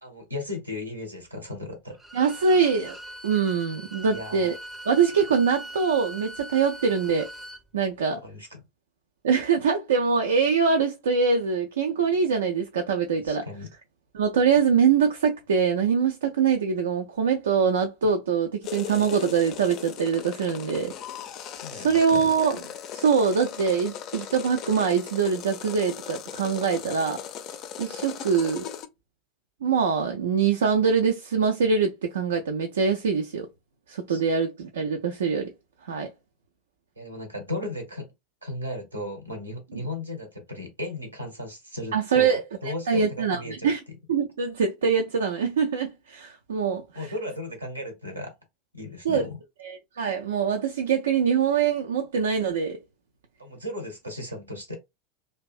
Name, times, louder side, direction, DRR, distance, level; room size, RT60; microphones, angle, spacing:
voice 1, 0.0-2.0 4.0-4.5 8.1-8.6 13.2-13.7 21.6-22.3 34.1-34.2 37.0-38.1 38.4-43.7 46.9-48.3 48.7-49.4 53.4-54.8, left 1 dB, 85° right, 0.8 m, -36 dB
Bowed string instrument, 1.9-7.6, right 1 dB, 10° right, 0.6 m, -41 dB
voice 2, 2.1-3.0 3.2-4.5 4.9-7.3 7.7-8.2 9.2-13.5 14.1-20.9 21.7-22.6 22.9-27.2 27.8-28.7 29.6-33.5 33.9-35.5 35.9-36.1 41.9-42.4 42.9-43.8 44.1-46.8 49.0-49.3 49.6-52.8, right 6 dB, 70° right, 0.3 m, -23 dB
sound 1, 18.6-28.9, left 9 dB, 45° left, 0.4 m, -38 dB
2.5 x 2.2 x 2.4 m
figure-of-eight pair, 80°, 0 cm